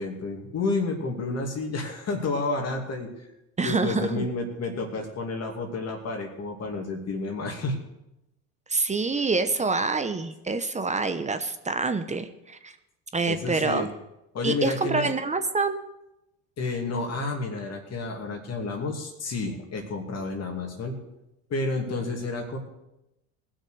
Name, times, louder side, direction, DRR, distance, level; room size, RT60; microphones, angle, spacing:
voice 1, 0.0-3.1 3.6-7.8 13.3-13.9 14.3-15.1 16.6-21.0 21.5-22.6, left 3 dB, 45° left, 2 dB, 2.6 m, -30 dB
voice 2, 3.6-4.3 8.7-12.7 13.1-13.9 14.4-15.8, right 3 dB, 20° right, 10 dB, 0.9 m, -26 dB
18.5 x 6.5 x 6.4 m, 0.89 s
supercardioid pair, 85°, 37 cm